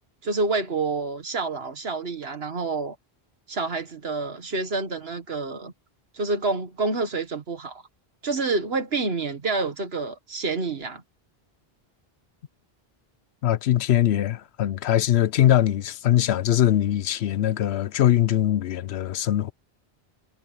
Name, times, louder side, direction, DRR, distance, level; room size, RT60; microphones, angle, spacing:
voice 1, 0.2-3.0 3.5-5.7 6.1-7.8 8.2-11.0, right 3 dB, 75° right, 1.9 m, -28 dB
voice 2, 13.4-19.5, left 12 dB, 90° left, 0.9 m, -22 dB
omnidirectional pair, 1.1 m